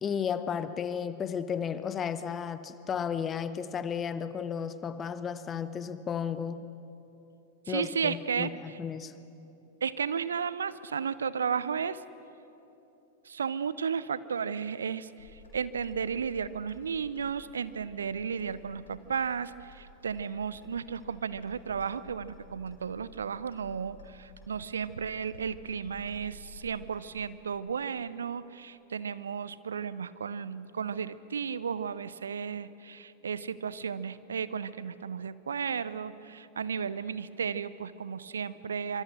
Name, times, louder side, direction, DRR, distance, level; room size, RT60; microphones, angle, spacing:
voice 1, 0.0-6.6 7.7-9.1, left 7 dB, 25° left, 13 dB, 1.0 m, -33 dB
voice 2, 7.7-8.5 9.8-12.0 13.2-39.0, right 6 dB, 70° right, 17 dB, 0.6 m, -34 dB
Clock, 15.2-27.3, left 2 dB, 70° left, 5.8 m, -54 dB
25.5 x 24.5 x 6.4 m, 3.0 s
figure-of-eight pair, 90°, 0 cm